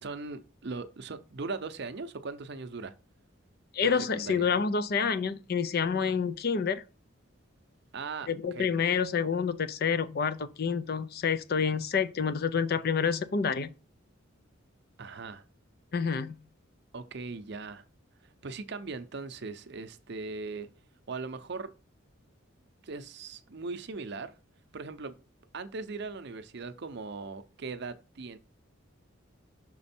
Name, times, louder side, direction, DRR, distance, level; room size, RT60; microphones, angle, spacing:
voice 1, 0.0-2.9 3.8-4.5 7.9-8.7 15.0-15.4 16.9-17.8 18.2-20.7 21.1-21.7 22.8-24.4 24.7-25.2 25.5-28.4, right 4 dB, 55° right, 0.6 m, -39 dB
voice 2, 3.7-6.8 8.3-13.7 15.9-16.4, left 6 dB, 50° left, 0.4 m, -28 dB
6.1 x 4.3 x 4.2 m
head